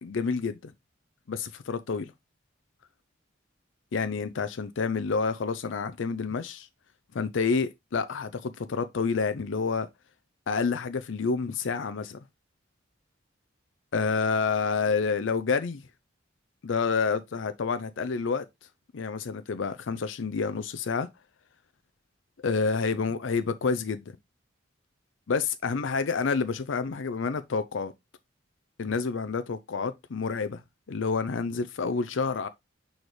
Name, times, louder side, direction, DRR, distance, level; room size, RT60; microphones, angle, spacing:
voice 1, 0.0-0.7 1.3-2.1 3.9-6.7 7.1-9.9 10.5-12.2 13.9-15.8 16.6-18.4 18.9-21.1 22.4-24.0 25.3-27.9 28.8-30.6 30.9-32.5, left 5 dB, 70° left, 0.5 m, -28 dB
6.3 x 4.7 x 3.2 m
head